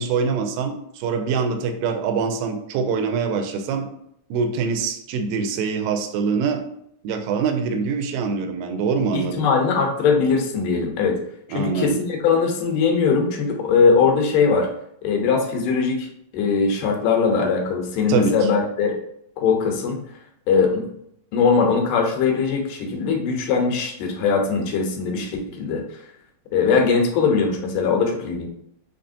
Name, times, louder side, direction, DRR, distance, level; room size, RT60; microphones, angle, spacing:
voice 1, 0.0-3.9 4.3-6.6 7.0-9.5 11.5-12.0 18.1-18.5, right 5 dB, 90° right, 5 dB, 2.3 m, -24 dB
voice 2, 9.1-11.2 11.5-14.7 15.0-16.1 16.3-19.0 19.4-20.0 20.5-20.8 21.3-25.8 26.5-28.5, left 5 dB, 80° left, 2 dB, 2.4 m, -20 dB
5.6 x 3.6 x 2.6 m, 0.72 s
omnidirectional pair, 4.0 m